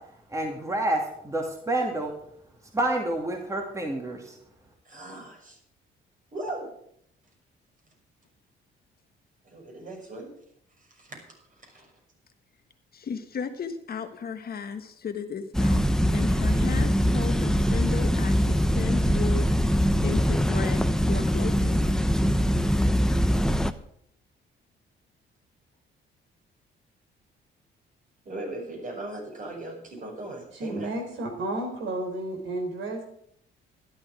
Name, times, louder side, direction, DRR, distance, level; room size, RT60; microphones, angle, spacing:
voice 1, 0.3-2.1 2.7-4.4, right 1 dB, 15° right, 2 dB, 2.5 m, -28 dB
voice 2, 4.8-5.6 6.3-6.7 9.4-10.3 10.9-11.2 11.5-11.9 22.5-22.9 28.3-30.9, right 2 dB, 40° right, 1 dB, 5.9 m, -38 dB
voice 3, 12.9-15.8 16.1-19.5 20.0-20.8 21.1-21.8, left 6 dB, 50° left, 7 dB, 1.4 m, -34 dB
sound 1, 15.5-23.7, equal, 5° left, 0.8 m, -23 dB
voice 4, 30.5-33.0, right 2 dB, 75° right, 3 dB, 3.7 m, -32 dB
12.5 x 11.0 x 4.9 m, 0.69 s
cardioid pair, 90°, 20 cm